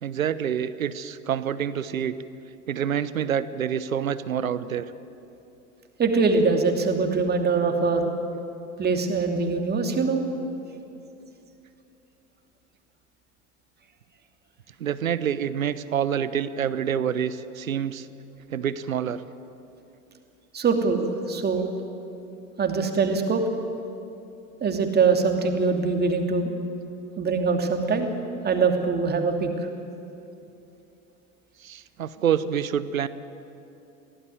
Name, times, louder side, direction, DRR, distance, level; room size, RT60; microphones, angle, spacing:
voice 1, 0.0-2.1 2.7-4.9 14.8-18.1 18.5-19.2 31.6-33.1, right 8 dB, 75° right, 15 dB, 1.0 m, -27 dB
voice 2, 6.0-8.1 8.8-10.2 20.5-21.7 22.6-23.4 24.6-26.5 27.2-28.1 28.4-29.7, right 4 dB, 25° right, 4 dB, 2.8 m, -23 dB
23.0 x 16.5 x 9.2 m, 2.8 s
figure-of-eight pair, 80°, 41 cm